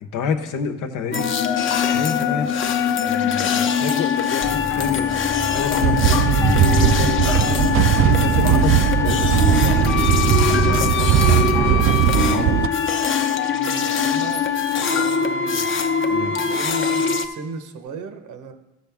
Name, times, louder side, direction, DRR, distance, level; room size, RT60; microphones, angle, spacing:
voice 1, 0.0-2.5 3.0-5.1 5.4-6.4 6.7-7.7 8.0-9.9 10.5-11.2 11.6-12.5 16.1-16.4, left 6 dB, 90° left, 7 dB, 0.9 m, -29 dB
sound 1, 1.1-17.3, left 7 dB, 40° left, 0.7 m, -22 dB
sound 2, 4.4-11.8, left 2 dB, 10° left, 0.4 m, -28 dB
sound 3, 5.8-12.7, right 10 dB, 45° right, 0.4 m, -18 dB
voice 2, 11.5-12.2 13.5-15.7 16.4-18.5, right 4 dB, 75° right, 7 dB, 1.1 m, -36 dB
13.5 x 6.3 x 3.5 m, 1.0 s
cardioid pair, 90°, 30 cm